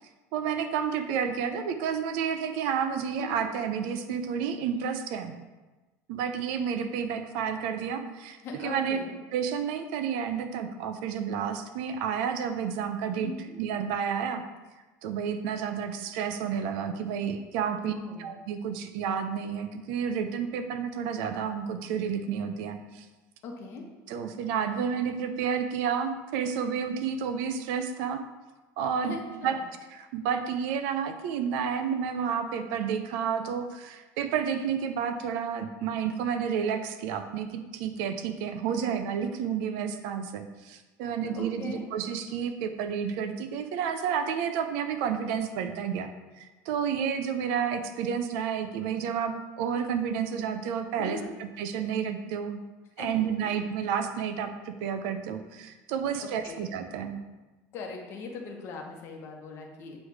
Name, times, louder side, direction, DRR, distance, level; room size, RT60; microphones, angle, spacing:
voice 1, 0.3-5.3 6.1-9.0 9.3-13.3 13.6-14.4 15.0-17.9 18.2-23.1 24.1-28.2 28.8-29.1 29.4-29.6 30.0-46.1 46.4-52.6 53.0-57.2, right 7 dB, 75° right, 8 dB, 0.6 m, -30 dB
voice 2, 8.4-9.2 13.2-13.6 17.8-18.3 23.4-23.8 29.0-29.6 41.2-41.9 51.0-51.4 53.0-53.6 56.1-56.7 57.7-60.0, left 4 dB, 40° left, 1 dB, 1.0 m, -40 dB
8.2 x 3.2 x 4.8 m, 1.2 s
cardioid pair, 180°, 7 cm